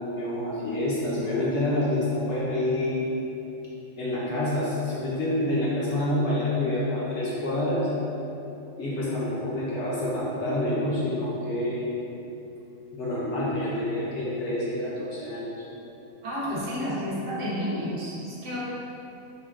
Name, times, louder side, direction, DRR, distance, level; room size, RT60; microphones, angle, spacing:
voice 1, 0.0-3.0 4.0-7.9 8.8-11.9 12.9-15.5, left 1 dB, 60° left, -8 dB, 0.8 m, -27 dB
voice 2, 16.2-18.6, equal, 90° right, -7 dB, 1.5 m, -30 dB
5.8 x 2.3 x 2.3 m, 3.0 s
omnidirectional pair, 1.7 m